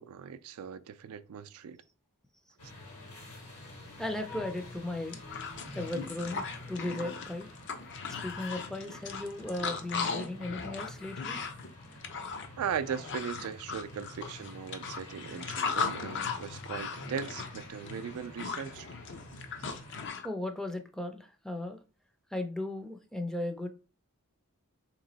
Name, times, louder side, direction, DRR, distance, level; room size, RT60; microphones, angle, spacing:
voice 1, 0.0-1.8 12.6-18.9, right 7 dB, 70° right, 0.3 m, -38 dB
sound 1, 2.6-20.1, left 1 dB, 75° left, 1.7 m, -49 dB
voice 2, 4.0-5.2 5.8-7.5 8.2-11.4 20.2-21.8 22.3-23.7, left 1 dB, ahead, 0.4 m, -36 dB
sound 2, 4.6-4.7 5.0-20.3, left 5 dB, 55° left, 0.6 m, -38 dB
3.5 x 3.0 x 3.9 m
head